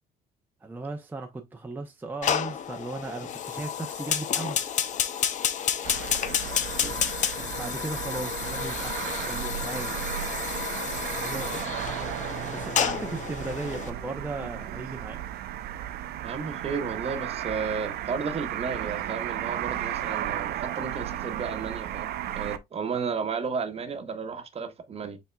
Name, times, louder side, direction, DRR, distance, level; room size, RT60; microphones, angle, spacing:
voice 1, 0.6-4.7 6.7-10.0 11.2-11.6 12.5-15.2 22.9-23.1, right 3 dB, 10° right, 0.6 m, -37 dB
Fire, 2.2-13.9, left 8 dB, 45° left, 0.6 m, -30 dB
sound 1, 5.8-22.6, right 12 dB, 70° right, 0.6 m, -34 dB
voice 2, 11.3-11.6 16.2-25.2, right 5 dB, 35° right, 1.0 m, -33 dB
5.6 x 4.2 x 2.2 m
cardioid pair, 110°, 17 cm